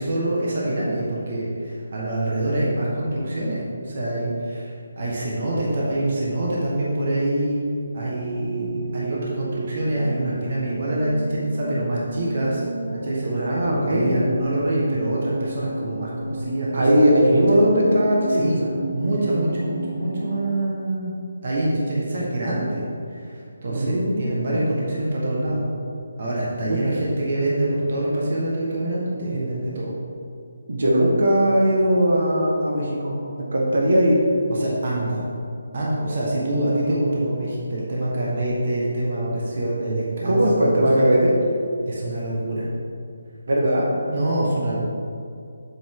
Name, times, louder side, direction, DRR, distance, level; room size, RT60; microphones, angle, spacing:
voice 1, 0.0-7.6 7.9-12.6 12.9-16.8 17.3-17.6 18.3-18.6 18.9-21.1 21.4-22.8 23.1-25.6 26.2-29.9 34.5-35.2 35.7-40.8 41.9-42.7 44.1-44.8, right 1 dB, 40° right, -5 dB, 1.4 m, -25 dB
sound 1, 8.1-20.6, right 2 dB, 85° right, 1.0 m, -33 dB
voice 2, 13.3-14.2 16.7-18.5 23.7-24.7 26.7-26.8 30.7-34.3 40.2-41.4 43.5-43.9, equal, 70° right, -2 dB, 1.4 m, -19 dB
7.6 x 5.3 x 3.7 m, 2.4 s
hypercardioid pair, 175°, 0 cm